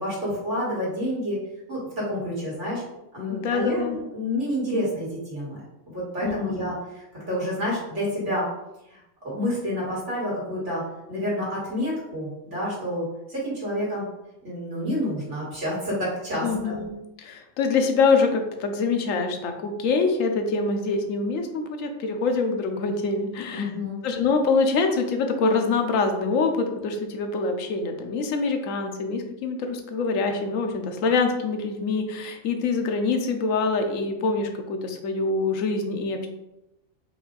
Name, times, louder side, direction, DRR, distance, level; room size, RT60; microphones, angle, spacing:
voice 1, 0.0-1.4 1.7-2.8 3.1-5.6 5.9-8.5 8.9-14.0 14.4-16.8 23.5-24.0, equal, 60° right, -6 dB, 2.2 m, -29 dB
voice 2, 3.3-4.0 6.2-6.6 16.4-16.9 17.2-23.7 24.0-36.3, left 4 dB, 70° left, 5 dB, 1.0 m, -25 dB
4.9 x 2.6 x 3.9 m, 0.91 s
omnidirectional pair, 1.4 m